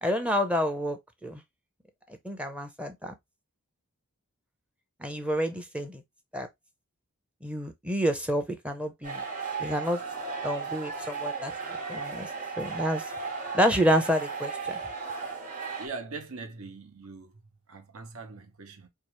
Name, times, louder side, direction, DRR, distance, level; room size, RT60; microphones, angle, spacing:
voice 1, 0.0-1.4 2.1-3.1 5.0-6.0 6.3-6.5 7.4-9.2 9.6-10.0 10.4-11.5 11.9-12.3 12.6-13.1 13.5-14.8, equal, 5° right, 0.5 m, -28 dB
sound 1, 9.0-15.9, right 5 dB, 35° right, 1.0 m, -35 dB
voice 2, 15.8-17.4 17.7-18.9, right 4 dB, 75° right, 0.9 m, -41 dB
4.5 x 2.4 x 3.0 m
head